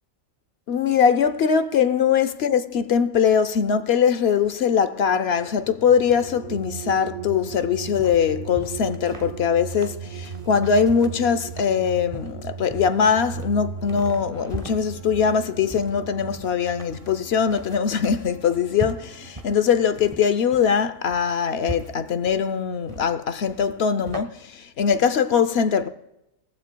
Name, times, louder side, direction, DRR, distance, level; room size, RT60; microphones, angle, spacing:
voice 1, 0.7-25.9, left 7 dB, 55° left, 0.8 m, -22 dB
sound 1, 1.6-1.8 5.2-20.3, right 7 dB, 80° right, 0.4 m, -38 dB
sound 2, 7.5-24.2, right 2 dB, 25° right, 0.9 m, -40 dB
20.0 x 15.0 x 2.2 m
omnidirectional pair, 1.5 m